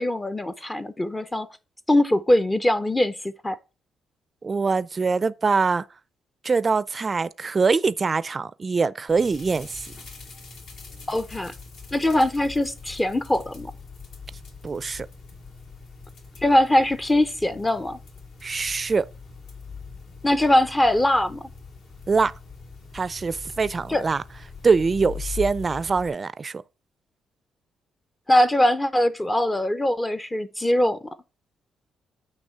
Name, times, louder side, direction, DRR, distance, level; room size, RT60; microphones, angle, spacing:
voice 1, 0.0-1.5 1.9-3.6 11.1-11.5 11.9-13.7 16.4-18.0 20.2-21.4 23.9-24.0 28.3-31.1, left 1 dB, 15° left, 0.6 m, -22 dB
voice 2, 4.4-5.8 6.4-9.9 14.6-15.1 18.4-19.1 22.1-22.3 22.9-24.2 24.6-26.6, right 4 dB, 35° right, 0.4 m, -23 dB
sound 1, 9.1-26.1, left 5 dB, 70° left, 2.5 m, -42 dB
9.0 x 3.1 x 5.5 m
cardioid pair, 90°, 0 cm